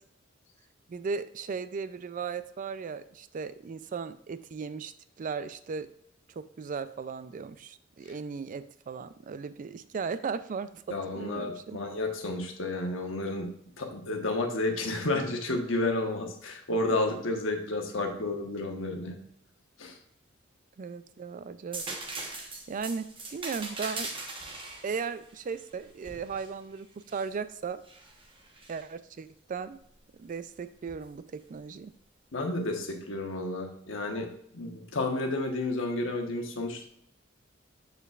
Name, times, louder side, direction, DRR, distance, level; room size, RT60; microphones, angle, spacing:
voice 1, 0.9-5.9 6.3-11.8 20.8-22.0 22.7-24.1 24.8-27.8 28.7-29.8 30.2-31.9, right 5 dB, 40° right, 13 dB, 0.3 m, -37 dB
voice 2, 10.9-13.5 13.8-19.2 19.8-19.9 32.3-34.3 34.5-36.9, left 2 dB, 70° left, 3 dB, 1.2 m, -31 dB
sound 1, 21.7-27.3 27.8-28.8 30.9-31.1, right 3 dB, 25° right, 1.1 m, -40 dB
6.8 x 6.8 x 2.4 m, 0.69 s
head